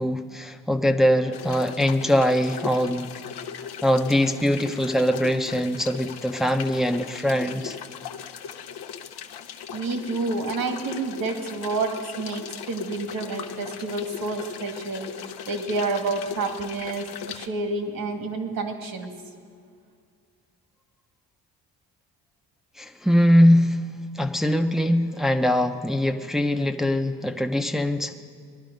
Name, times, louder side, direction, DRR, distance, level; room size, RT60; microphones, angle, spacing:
voice 1, 0.0-3.1 3.8-7.8 22.8-23.8 24.1-28.2, equal, ahead, 4 dB, 0.7 m, -22 dB
sound 1, 1.3-17.5, left 8 dB, 80° left, 0.9 m, -38 dB
voice 2, 9.7-11.9 12.2-15.1 15.5-19.1, right 3 dB, 60° right, 4 dB, 2.1 m, -29 dB
19.0 x 11.5 x 5.2 m, 2.2 s
cardioid pair, 95°, 38 cm